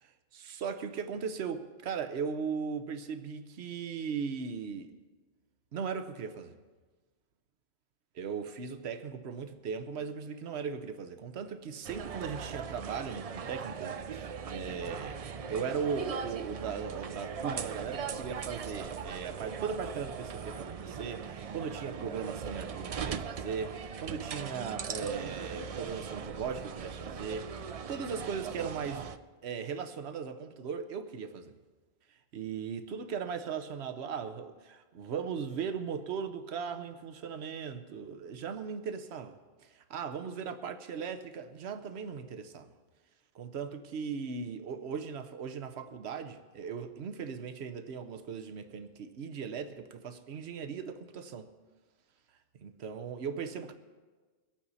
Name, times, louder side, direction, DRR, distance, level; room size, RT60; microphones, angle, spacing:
voice 1, 0.4-4.9 5.7-6.6 8.2-29.1 29.4-31.5 32.1-42.7 43.3-51.5 52.6-53.7, right 6 dB, 85° right, 8 dB, 1.1 m, -38 dB
sound 1, 11.8-29.2, right 6 dB, 50° right, 0.4 m, -40 dB
23.5 x 8.9 x 4.0 m, 1.4 s
omnidirectional pair, 1.1 m